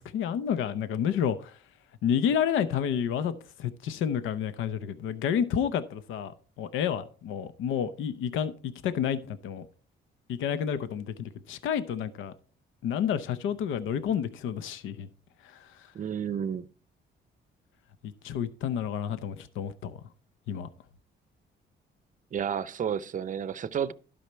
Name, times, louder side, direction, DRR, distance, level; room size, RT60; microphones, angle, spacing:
voice 1, 0.0-1.6 2.0-3.3 3.6-6.3 6.6-9.7 10.3-12.3 12.8-15.1 15.4-15.7 18.2-20.0 20.5-20.7, left 8 dB, 85° left, 0.7 m, -30 dB
voice 2, 15.9-16.7 22.3-23.9, right 8 dB, 40° right, 0.6 m, -31 dB
11.5 x 5.5 x 4.5 m
cardioid pair, 90°, 20 cm